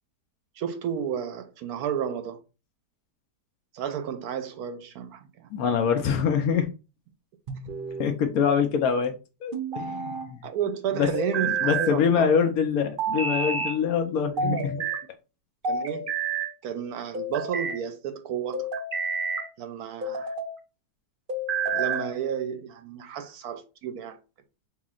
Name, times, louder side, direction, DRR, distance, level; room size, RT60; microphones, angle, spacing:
voice 1, 0.6-2.4 3.7-5.5 10.4-12.4 14.3-14.9 15.7-16.1 16.6-18.7 19.6-20.3 21.7-24.2, right 8 dB, 70° right, 1.0 m, -32 dB
voice 2, 5.5-6.7 8.0-9.1 9.4-10.5 11.0-11.1 11.6-14.8, left 7 dB, 70° left, 1.0 m, -24 dB
sound 1, 7.5-8.2 9.5-10.3 11.1-11.9 13.0-13.8 14.4-15.0 15.6-16.5 17.1-17.8 18.5-19.5 20.0-20.5 21.3-22.1, right 4 dB, 55° right, 0.6 m, -29 dB
4.7 x 3.0 x 2.4 m
omnidirectional pair, 1.8 m